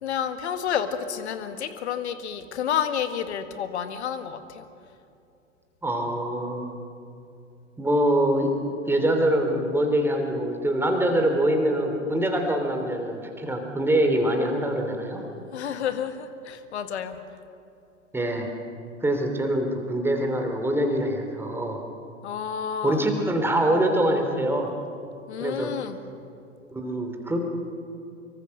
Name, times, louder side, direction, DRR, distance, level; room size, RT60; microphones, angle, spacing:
voice 1, 0.0-4.7 15.5-17.2 22.2-23.0 25.3-26.0, left 8 dB, 60° left, 9 dB, 1.9 m, -30 dB
voice 2, 5.8-6.7 7.8-8.5 8.9-15.3 18.1-18.5 19.0-21.8 22.8-24.7 25.4-25.7 26.7-27.4, right 1 dB, 5° right, 3 dB, 3.1 m, -24 dB
25.0 x 23.5 x 6.6 m, 2.6 s
figure-of-eight pair, 100°, 38 cm